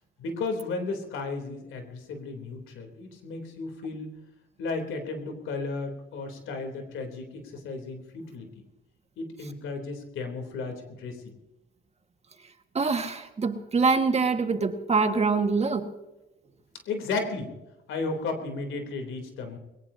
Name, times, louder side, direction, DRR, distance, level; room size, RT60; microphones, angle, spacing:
voice 1, 0.2-4.1 4.6-8.6 9.2-11.3 16.9-17.5 17.9-19.6, left 3 dB, 85° left, 3.5 m, -34 dB
voice 2, 12.8-15.9, right 4 dB, 30° right, 1.8 m, -24 dB
22.0 x 19.0 x 2.8 m
cardioid pair, 90°, 20 cm